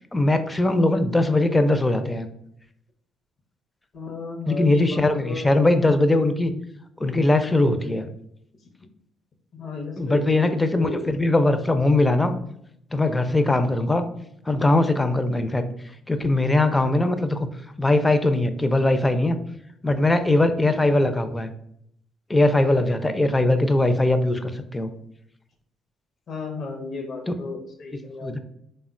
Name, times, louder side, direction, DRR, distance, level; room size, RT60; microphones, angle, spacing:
voice 1, 0.1-2.3 4.5-6.5 7.0-8.1 10.0-12.4 12.9-14.1 14.5-15.6 16.1-17.5 17.8-19.4 19.8-21.5 22.3-24.9 27.3-27.4 28.2-28.4, left 2 dB, 20° left, 9 dB, 0.4 m, -20 dB
voice 2, 3.9-5.6 9.5-11.3 13.3-13.6 26.3-28.4, left 3 dB, 55° left, 4 dB, 0.6 m, -34 dB
3.5 x 2.1 x 2.4 m, 0.74 s
hypercardioid pair, 50°, 0 cm